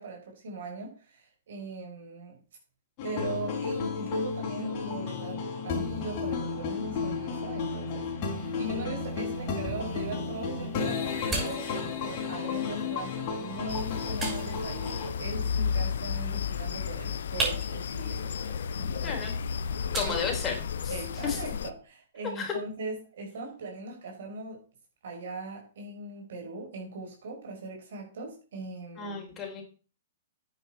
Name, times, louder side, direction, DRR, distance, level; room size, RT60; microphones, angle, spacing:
voice 1, 0.0-2.4 3.0-19.2 19.6-19.7 20.0-20.2 20.9-24.6 25.0-29.2, right 2 dB, 60° right, 1 dB, 5.0 m, -40 dB
sound 1, 3.0-15.1, left 5 dB, 40° left, 4.1 m, -33 dB
sound 2, 9.0-21.0, right 3 dB, 20° right, 6.3 m, -40 dB
sound 3, 13.7-21.7, left 7 dB, 60° left, 0.7 m, -33 dB
voice 2, 19.0-19.3 19.9-20.6 20.8-21.0 21.2-21.4 22.4-22.5 29.0-29.6, left 5 dB, 20° left, 2 dB, 4.0 m, -32 dB
9.9 x 9.6 x 4.5 m, 0.37 s
figure-of-eight pair, 110°, 0 cm